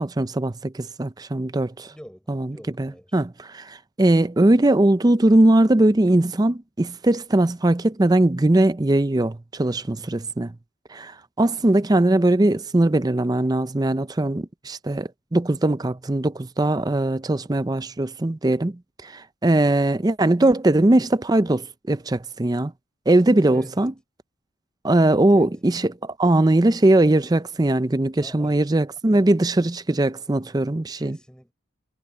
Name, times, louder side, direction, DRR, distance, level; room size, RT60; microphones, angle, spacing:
voice 1, 0.0-1.9 2.3-10.5 10.9-22.7 23.1-23.9 24.8-31.2, right 1 dB, 20° right, 0.5 m, -20 dB
voice 2, 1.9-3.2 10.0-10.4 23.5-23.9 25.3-25.6 28.1-28.6 29.1-29.3 30.9-31.5, equal, 5° left, 5.0 m, -45 dB
head